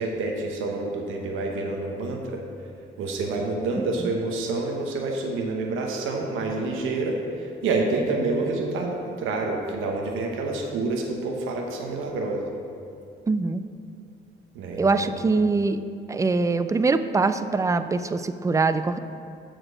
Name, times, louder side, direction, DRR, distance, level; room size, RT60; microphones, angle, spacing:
voice 1, 0.0-2.4 3.0-12.5 14.5-15.1, right 3 dB, 90° right, 1 dB, 0.9 m, -28 dB
voice 2, 13.3-13.6 14.8-15.8 16.1-19.0, right 3 dB, 15° right, 11 dB, 0.3 m, -23 dB
7.6 x 4.4 x 6.0 m, 2.4 s
cardioid pair, 90°, 20 cm